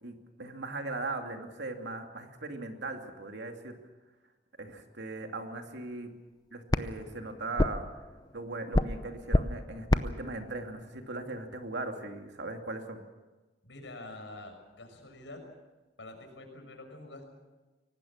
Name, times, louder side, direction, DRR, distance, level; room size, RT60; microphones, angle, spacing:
voice 1, 0.0-3.7 4.6-6.1 6.5-7.8 8.3-13.0, right 2 dB, 75° right, 4 dB, 2.6 m, -39 dB
sound 1, 5.7-12.1, left 1 dB, 20° left, 0.7 m, -32 dB
voice 2, 13.6-15.4 16.0-17.2, left 2 dB, 90° left, 4 dB, 6.1 m, -46 dB
24.5 x 18.5 x 7.4 m, 1.2 s
head